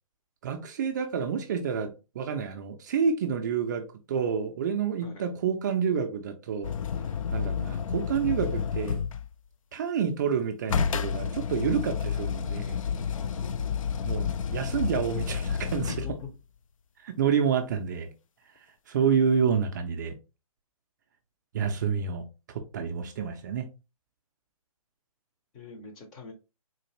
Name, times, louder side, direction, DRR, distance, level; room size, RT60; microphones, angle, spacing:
voice 1, 0.4-6.7 7.3-9.0 9.7-12.8 14.0-15.9 17.0-18.1 18.9-20.2 21.5-22.2 22.5-23.6, right 7 dB, 30° right, 0.4 m, -28 dB
sound 1, 6.6-9.3 10.7-16.3 19.1-19.2, left 6 dB, 65° left, 0.4 m, -30 dB
voice 2, 13.1-13.7 15.9-16.2 25.5-26.3, left 3 dB, 20° left, 0.6 m, -42 dB
3.8 x 2.4 x 2.9 m
hypercardioid pair, 145°, 19 cm